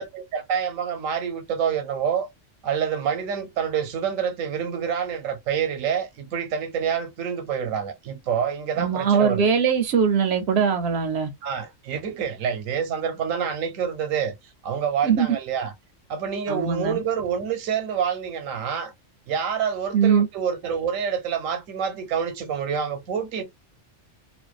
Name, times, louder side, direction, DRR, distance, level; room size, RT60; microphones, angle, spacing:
voice 1, 0.0-2.3 2.6-9.4 11.4-14.3 14.6-15.7 16.1-18.9 19.3-23.4, right 7 dB, 85° right, 1.1 m, -27 dB
voice 2, 8.8-11.3 15.0-15.4 16.5-17.0 19.9-20.3, right 6 dB, 65° right, 0.7 m, -21 dB
2.5 x 2.1 x 2.3 m
omnidirectional pair, 1.3 m